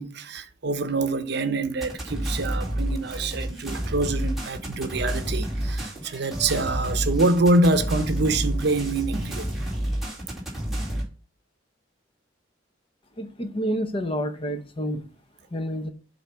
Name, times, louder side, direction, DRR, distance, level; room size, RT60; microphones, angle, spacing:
voice 1, 0.0-9.5, right 2 dB, 65° right, 0.7 m, -25 dB
sound 1, 1.8-11.0, right 1 dB, ahead, 2.2 m, -29 dB
voice 2, 13.2-15.0 15.5-15.9, equal, 30° left, 0.7 m, -29 dB
7.9 x 2.8 x 5.5 m
head